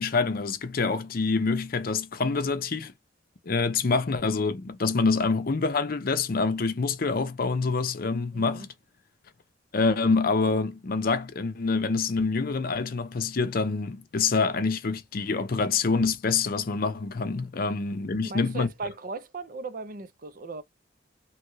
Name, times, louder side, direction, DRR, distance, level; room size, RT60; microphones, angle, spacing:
voice 1, 0.0-2.9 3.5-8.7 9.7-18.7, left 4 dB, 50° left, 0.6 m, -26 dB
voice 2, 8.3-8.7 18.2-20.6, right 3 dB, 45° right, 0.6 m, -37 dB
3.1 x 2.3 x 3.1 m
head